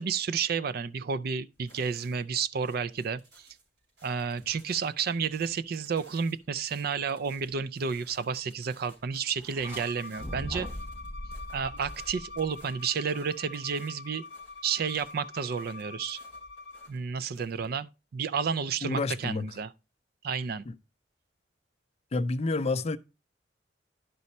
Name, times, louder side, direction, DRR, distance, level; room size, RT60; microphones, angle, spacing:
voice 1, 0.0-3.5 4.0-10.7 11.5-14.2 14.6-16.2 16.9-19.7 20.2-20.6, right 6 dB, 55° right, 0.4 m, -31 dB
sound 1, 1.5-17.7, right 2 dB, 80° right, 5.2 m, -60 dB
sound 2, 9.4-9.8 10.2-12.7, equal, 10° right, 1.6 m, -40 dB
Bowed string instrument, 9.6-16.9, left 3 dB, 80° left, 0.9 m, -45 dB
voice 2, 18.8-19.5 20.7-20.8 22.1-23.0, left 3 dB, 35° left, 0.4 m, -29 dB
10.5 x 5.4 x 4.1 m
head